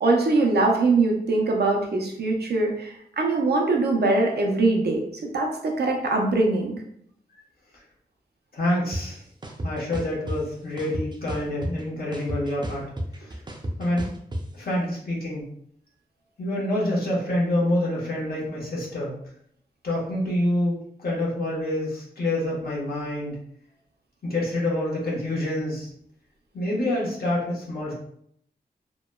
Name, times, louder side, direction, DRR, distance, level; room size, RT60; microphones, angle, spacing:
voice 1, 0.0-6.7, right 3 dB, 80° right, 1 dB, 0.5 m, -22 dB
voice 2, 8.5-9.2 9.6-12.9 13.2-13.4 13.8-14.1 14.5-15.5 16.4-19.1 19.8-23.4 24.2-25.9 26.5-27.9, left 1 dB, 65° left, -5 dB, 1.0 m, -27 dB
sound 1, 8.9-9.0 9.4-10.4 10.8-11.8 12.1-14.4, right 1 dB, 25° right, 0.5 m, -31 dB
2.9 x 2.1 x 2.2 m, 0.69 s
cardioid pair, 55°, 17 cm